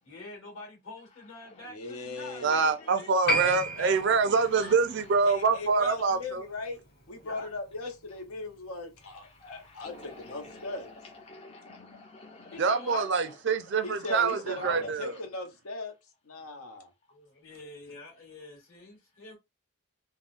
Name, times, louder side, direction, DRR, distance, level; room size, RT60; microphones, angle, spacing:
voice 1, 0.0-3.1 4.6-4.8 7.2-7.5 12.5-13.0 17.1-19.4, left 2 dB, 65° left, 1.9 m, -45 dB
voice 2, 1.7-2.7 3.3-4.0 5.2-10.9 13.8-15.9 16.3-16.9, left 2 dB, 85° left, 0.8 m, -38 dB
voice 3, 2.4-6.4 12.6-15.2, right 4 dB, 55° right, 0.4 m, -26 dB
Piano, 3.3-10.2 10.5-10.6, right 1 dB, 45° left, 1.0 m, -36 dB
voice 4, 9.4-10.9 11.3-12.6, left 2 dB, 25° left, 0.4 m, -48 dB
3.6 x 2.1 x 2.4 m
head